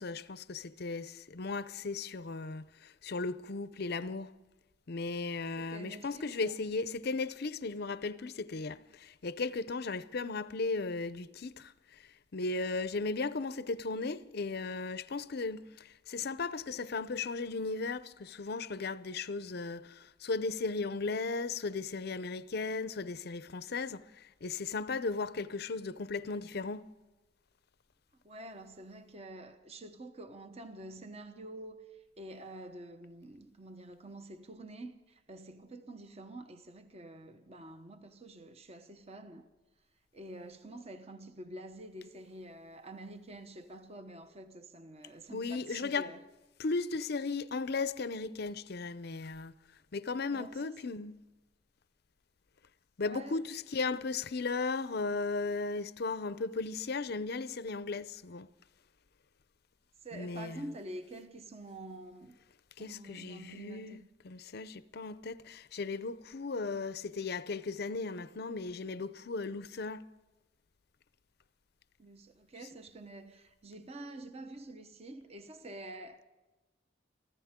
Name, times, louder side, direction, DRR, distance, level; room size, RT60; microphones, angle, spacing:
voice 1, 0.0-4.3 4.9-11.7 12.3-26.8 45.3-46.1 46.6-49.5 49.9-51.1 53.0-58.5 60.1-60.7 62.8-70.0, left 3 dB, 55° left, 0.6 m, -36 dB
voice 2, 5.6-6.6 28.2-39.5 40.1-46.2 50.3-50.8 53.0-53.4 60.0-62.4 62.8-64.1 72.0-76.2, right 1 dB, 35° right, 1.0 m, -47 dB
24.0 x 15.0 x 3.7 m
head